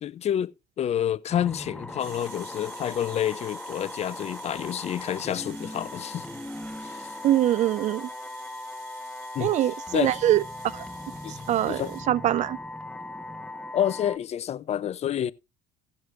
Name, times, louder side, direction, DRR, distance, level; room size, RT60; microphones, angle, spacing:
voice 1, 0.0-6.3 6.8-7.1 9.3-9.5 9.9-10.2 11.2-11.4 11.7-11.9 13.7-15.3, left 10 dB, 40° left, 0.5 m, -28 dB
sound 1, 1.3-14.2, left 2 dB, 5° left, 1.2 m, -39 dB
sound 2, 2.0-12.0, right 7 dB, 70° right, 2.5 m, -49 dB
voice 2, 7.2-8.1 9.4-10.4 10.7-10.8 11.3-11.8 12.1-12.6, right 13 dB, 45° right, 0.4 m, -23 dB
17.0 x 7.6 x 2.5 m
hypercardioid pair, 75°, 17 cm